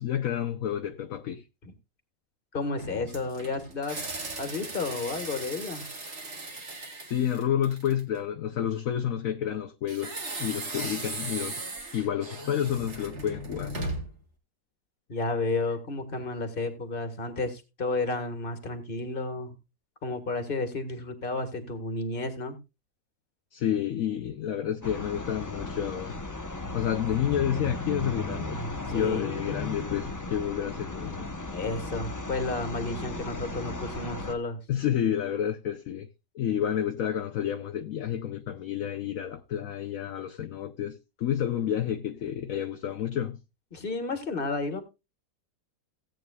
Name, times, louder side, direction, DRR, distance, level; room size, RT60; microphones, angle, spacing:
voice 1, 0.0-1.4 7.1-11.6 11.9-13.7 23.5-26.2 26.7-28.6 28.9-31.3 34.7-36.1 36.3-43.4, left 10 dB, 60° left, 1.1 m, -30 dB
voice 2, 2.5-4.0 4.4-5.9 15.1-19.5 20.0-22.6 28.9-29.4 31.5-34.6 43.7-44.8, left 3 dB, 35° left, 1.7 m, -32 dB
sound 1, 2.8-8.2 9.9-14.2, right 2 dB, 45° right, 2.1 m, -37 dB
sound 2, 24.8-34.3, left 2 dB, 20° left, 0.6 m, -36 dB
17.0 x 8.8 x 2.3 m
omnidirectional pair, 1.8 m